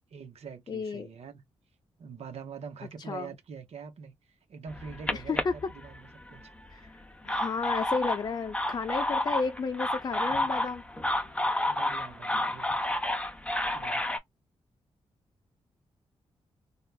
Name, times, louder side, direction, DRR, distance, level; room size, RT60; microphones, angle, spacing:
voice 1, 0.1-1.4 2.0-6.9 11.7-13.0 13.7-14.1, right 6 dB, 70° right, 1.0 m, -45 dB
voice 2, 0.7-1.1 3.1-3.3 5.1-5.6 6.7-6.9 7.2-10.8, left 4 dB, 40° left, 0.5 m, -32 dB
sound 1, 4.7-6.3 7.0-14.2, left 1 dB, 10° left, 0.8 m, -30 dB
3.3 x 2.4 x 2.3 m
cardioid pair, 75°, 11 cm